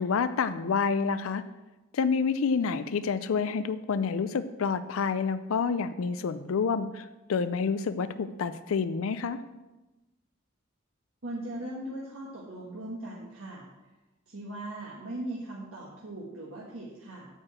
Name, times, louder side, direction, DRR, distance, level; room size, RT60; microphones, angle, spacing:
voice 1, 0.0-1.4 1.9-9.4, left 5 dB, 80° left, 12 dB, 0.4 m, -28 dB
voice 2, 11.2-13.7 14.3-17.3, right 1 dB, 85° right, -4 dB, 1.5 m, -39 dB
8.9 x 4.8 x 7.5 m, 1.1 s
head